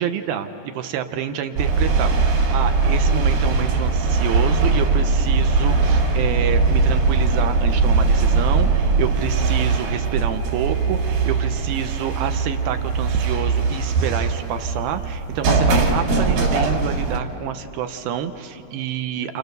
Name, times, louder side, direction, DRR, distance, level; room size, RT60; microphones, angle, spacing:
voice 1, 0.0-2.2 2.5-19.4, right 9 dB, 80° right, 8 dB, 2.3 m, -28 dB
sound 1, 1.6-17.2, right 4 dB, 55° right, 4.0 m, -20 dB
30.0 x 30.0 x 6.7 m, 2.7 s
omnidirectional pair, 5.3 m